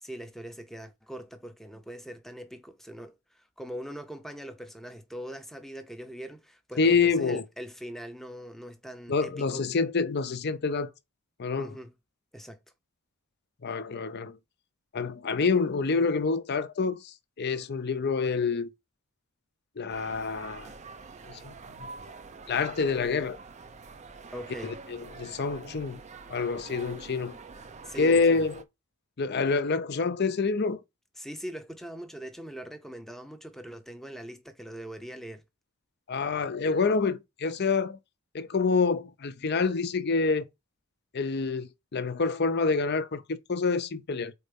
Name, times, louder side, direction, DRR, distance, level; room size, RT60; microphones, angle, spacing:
voice 1, 0.0-9.6 11.6-11.9 12.3-12.6 24.3-24.8 27.8-28.4 31.2-35.4, right 1 dB, ahead, 0.7 m, -41 dB
voice 2, 6.8-7.4 9.1-10.9 11.4-11.7 13.6-14.4 14.9-18.7 19.8-20.7 21.2-21.9 22.5-23.4 24.6-26.0 26.3-27.4 28.0-28.6 29.2-30.8 36.1-38.0 38.3-40.5 41.1-44.3, left 4 dB, 45° left, 0.6 m, -27 dB
sound 1, 19.9-28.6, right 4 dB, 30° right, 0.5 m, -46 dB
4.5 x 4.2 x 5.2 m
head